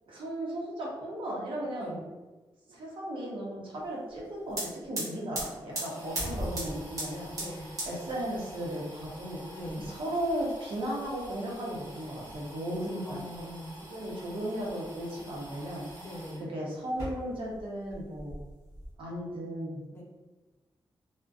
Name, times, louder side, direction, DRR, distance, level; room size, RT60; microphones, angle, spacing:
voice 1, 0.1-2.0 2.7-7.3 7.8-9.4 9.9-13.5 13.7-15.9 16.5-18.4 19.0-19.8, right 1 dB, 85° right, -3 dB, 0.7 m, -35 dB
sound 1, 4.2-4.3 4.5-16.4 16.9-17.6 17.9-18.9, right 1 dB, 40° right, 1.0 m, -41 dB
voice 2, 5.8-6.2 7.3-7.7 9.5-9.8 13.0-13.8 16.0-16.5 19.9-20.0, left 1 dB, 25° left, -3 dB, 0.6 m, -42 dB
2.4 x 2.1 x 2.4 m, 1.2 s
wide cardioid pair, 170°, 9 cm